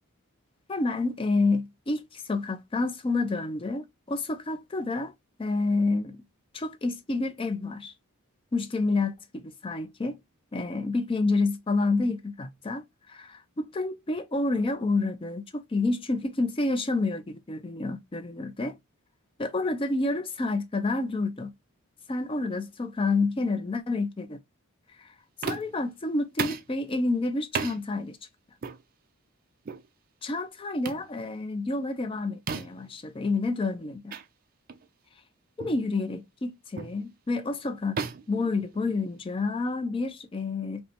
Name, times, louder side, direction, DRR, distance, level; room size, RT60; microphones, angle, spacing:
voice 1, 0.7-5.1 5.4-6.2 6.5-7.9 8.5-10.2 10.5-18.8 19.4-21.5 22.1-24.4 25.0-25.1 25.4-28.2 30.2-34.1 35.6-38.0 38.3-40.8, left 3 dB, 25° left, 0.4 m, -29 dB
sound 1, 25.4-25.8 26.4-26.7 27.5-27.8 28.6-28.8 29.6-29.9 30.8-31.1 32.5-32.9 34.1-34.2 34.7-34.8 35.6-35.8 36.8-37.0 38.0-39.2, right 5 dB, 40° right, 0.4 m, -34 dB
5.3 x 2.1 x 2.9 m
head